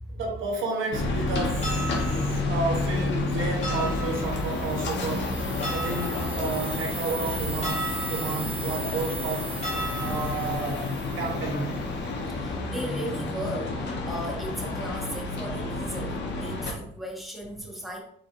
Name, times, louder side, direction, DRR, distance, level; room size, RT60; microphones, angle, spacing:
voice 1, 0.1-1.8 2.2-5.4 5.7-9.5 10.0-11.8, right 3 dB, 90° right, 0 dB, 1.2 m, -31 dB
sound 1, 0.9-16.7, left 2 dB, 65° left, 1.2 m, -30 dB
sound 2, 1.6-16.5, right 1 dB, 35° left, 1.7 m, -40 dB
sound 3, 3.8-11.7, right 3 dB, 30° right, 0.7 m, -39 dB
voice 2, 12.4-18.0, right 1 dB, ahead, -2 dB, 1.4 m, -37 dB
4.7 x 4.1 x 2.6 m, 0.65 s
cardioid pair, 90°, 20 cm